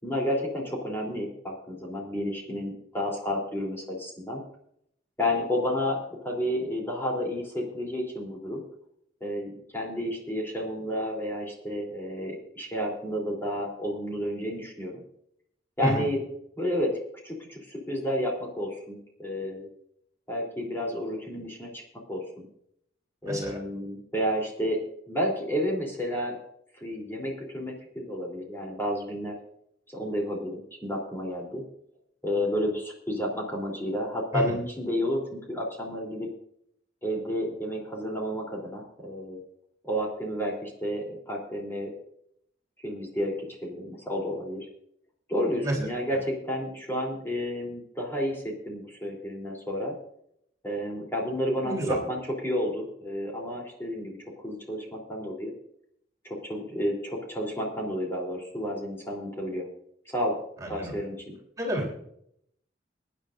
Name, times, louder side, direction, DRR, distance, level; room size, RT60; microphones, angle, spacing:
voice 1, 0.0-4.4 5.2-8.6 9.2-15.0 15.8-16.2 16.6-17.0 17.2-19.7 20.3-21.8 22.1-22.5 23.2-24.8 25.1-26.4 26.7-29.4 29.9-31.6 32.2-36.3 37.0-39.4 39.8-41.9 42.8-43.4 43.6-44.7 45.3-49.9 50.6-55.5 56.2-59.7 60.1-60.4 60.7-61.3, equal, 15° left, -2 dB, 3.5 m, -31 dB
voice 2, 23.2-23.6 34.3-34.5 45.6-45.8 51.6-52.0 60.6-61.0 61.6-62.0, right 1 dB, 20° right, -3 dB, 3.5 m, -30 dB
24.0 x 10.5 x 2.6 m, 0.71 s
head